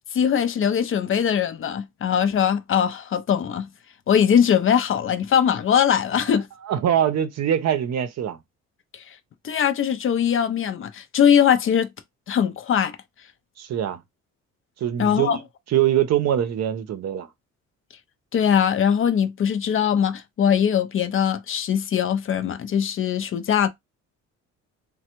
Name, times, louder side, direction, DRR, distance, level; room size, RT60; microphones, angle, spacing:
voice 1, 0.1-3.7 4.1-6.5 8.9-9.0 9.4-11.9 12.3-13.0 15.0-15.4 18.3-23.7, left 8 dB, 45° left, 0.5 m, -21 dB
voice 2, 6.6-8.4 13.6-14.0 14.8-15.4 15.7-17.3, right 10 dB, 60° right, 0.6 m, -23 dB
3.2 x 2.2 x 2.9 m
cardioid pair, 90°, 30 cm